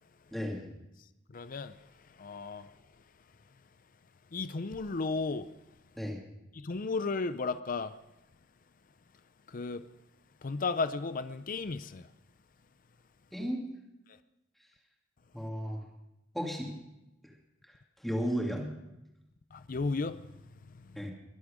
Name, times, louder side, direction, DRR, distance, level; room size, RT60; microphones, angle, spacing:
voice 1, 0.3-0.7 6.0-6.2 13.3-13.6 15.3-15.8 16.3-16.7 18.0-18.7 21.0-21.1, equal, ahead, 2.6 m, -34 dB
voice 2, 1.3-3.0 3.5-3.6 4.3-5.5 6.5-8.0 9.5-9.9 10.4-12.1 14.1-14.2 19.5-21.1, left 4 dB, 45° left, 0.5 m, -35 dB
23.0 x 8.3 x 5.1 m
head